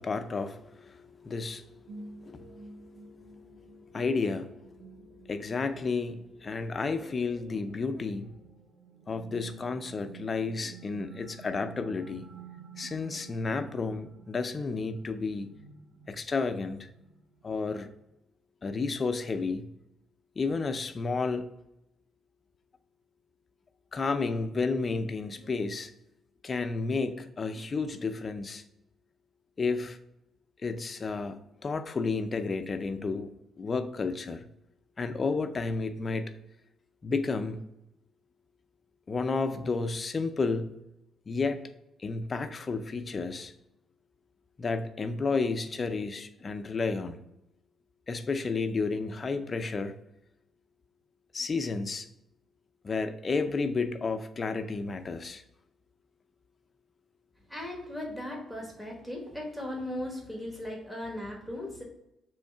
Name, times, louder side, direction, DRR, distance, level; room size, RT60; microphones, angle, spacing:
voice 1, 0.0-1.7 2.0-2.8 3.3-3.5 3.9-4.6 5.3-8.4 9.1-12.2 12.8-15.5 16.1-16.8 17.4-17.9 18.6-19.7 20.4-21.5 23.9-25.9 26.4-28.6 29.6-30.0 30.6-34.4 35.0-36.3 37.0-37.6 39.1-40.7 41.3-41.7 42.0-43.5 44.6-47.2 48.1-49.9 51.3-52.1 52.8-55.4, left 4 dB, 35° left, 0.5 m, -31 dB
sound 1, 1.9-18.1, right 5 dB, 80° right, 0.6 m, -51 dB
voice 2, 57.5-61.8, left 1 dB, 5° right, 1.3 m, -37 dB
3.5 x 3.1 x 4.4 m
cardioid pair, 90°, 0 cm